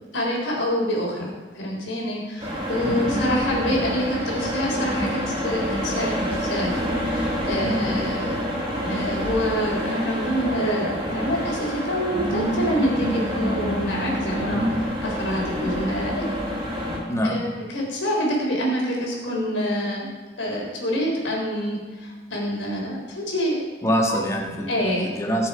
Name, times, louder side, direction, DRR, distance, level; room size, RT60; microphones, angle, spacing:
voice 1, 0.1-6.7 7.0-8.6 8.9-14.7 15.0-16.2 17.2-17.5 17.7-20.1 20.4-23.7 24.1-24.2 24.7-25.1, equal, 75° left, -2 dB, 3.9 m, -26 dB
sound 1, 2.4-17.0, equal, 25° right, 4.1 m, -27 dB
voice 2, 2.8-3.2 7.6-7.9 14.5-14.8 17.1-17.4 23.8-25.5, equal, 15° left, 1 dB, 1.5 m, -25 dB
19.5 x 7.0 x 4.9 m, 1.3 s
head